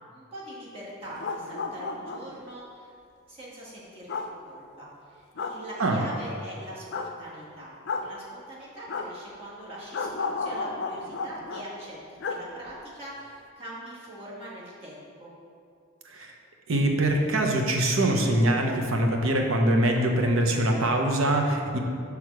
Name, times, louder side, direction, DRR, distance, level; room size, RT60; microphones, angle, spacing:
voice 1, 0.1-2.9 3.3-12.0 12.2-15.3, right 1 dB, 30° right, -7 dB, 1.7 m, -42 dB
sound 1, 1.0-2.4 4.1-4.3 5.4-5.6 6.9-7.1 7.8-8.1 8.9-9.1 9.9-11.6 12.2-12.4 12.7-12.8, left 4 dB, 55° left, 0.4 m, -32 dB
voice 2, 16.7-21.8, right 1 dB, 85° right, 2 dB, 0.8 m, -23 dB
6.4 x 3.6 x 5.9 m, 2.3 s
head